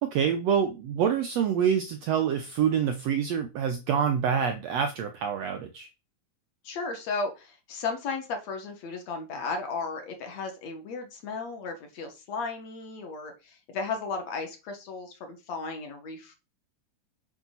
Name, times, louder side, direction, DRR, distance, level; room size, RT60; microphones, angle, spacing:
voice 1, 0.0-5.9, right 8 dB, 80° right, 1.5 m, -26 dB
voice 2, 6.6-16.4, left 4 dB, 55° left, 2.6 m, -35 dB
8.7 x 5.7 x 4.0 m
omnidirectional pair, 3.9 m